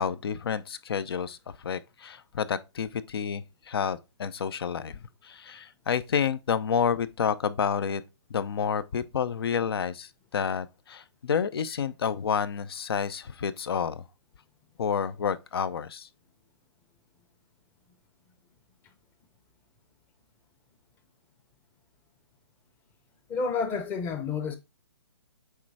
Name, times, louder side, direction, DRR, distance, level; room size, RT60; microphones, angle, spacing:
voice 1, 0.0-8.0 8.3-14.0 14.8-16.1, left 7 dB, 60° left, 0.7 m, -29 dB
voice 2, 23.3-24.6, left 5 dB, 15° left, 0.7 m, -29 dB
8.4 x 3.2 x 4.7 m
hypercardioid pair, 160°, 14 cm